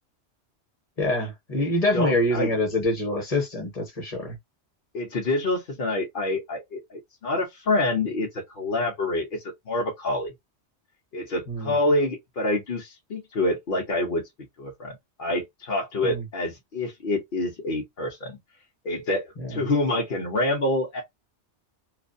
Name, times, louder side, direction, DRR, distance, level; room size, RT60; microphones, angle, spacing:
voice 1, 1.0-4.4 11.5-11.8 16.0-16.2 19.4-19.6, left 1 dB, 35° left, 1.0 m, -26 dB
voice 2, 1.9-2.5 4.9-10.3 11.1-14.2 14.6-18.4 18.8-21.0, left 2 dB, 55° left, 0.8 m, -27 dB
2.5 x 2.2 x 2.5 m
omnidirectional pair, 1.2 m